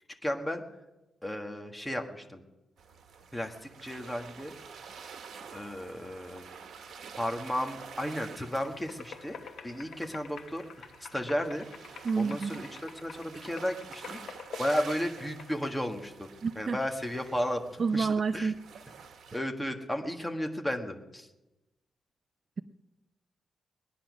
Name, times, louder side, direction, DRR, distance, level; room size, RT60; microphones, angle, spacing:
voice 1, 0.2-0.6 1.2-2.4 3.3-3.5 3.8-4.5 5.5-6.5 7.2-10.6 11.0-11.6 12.2-14.2 14.6-16.3 16.6-18.1 18.3-18.5 19.3-21.3, equal, 5° left, 3 dB, 1.5 m, -34 dB
sound 1, 2.8-19.4, right 6 dB, 80° right, 1.4 m, -49 dB
sound 2, 8.5-15.7, left 6 dB, 70° left, 1.1 m, -48 dB
voice 2, 12.0-12.6 16.4-16.8 17.8-18.5, right 5 dB, 40° right, 11 dB, 0.5 m, -28 dB
20.5 x 10.0 x 6.2 m, 1.0 s
wide cardioid pair, 135°, 0 cm